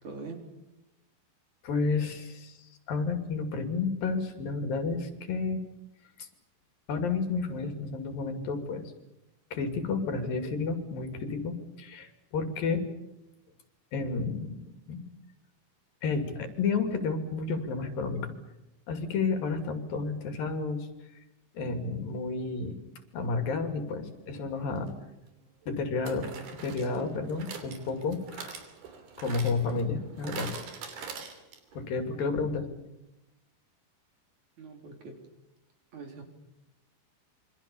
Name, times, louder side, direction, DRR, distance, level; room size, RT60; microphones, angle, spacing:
voice 1, 0.0-0.4 34.6-35.3 35.9-36.2, right 4 dB, 55° right, 4 dB, 4.8 m, -43 dB
voice 2, 1.6-2.6 2.9-5.6 6.2-6.3 6.9-8.9 9.5-12.8 13.9-15.1 16.0-18.3 18.9-20.9 21.5-22.8 23.1-24.9 25.7-28.6 29.2-30.5 31.7-32.7, left 4 dB, 70° left, 7 dB, 4.4 m, -31 dB
sound 1, 24.8-24.9 26.1-31.8 32.1-32.2 32.4-32.5, right 6 dB, 80° right, 5.0 m, -43 dB
27.5 x 25.0 x 7.1 m, 0.93 s
omnidirectional pair, 4.2 m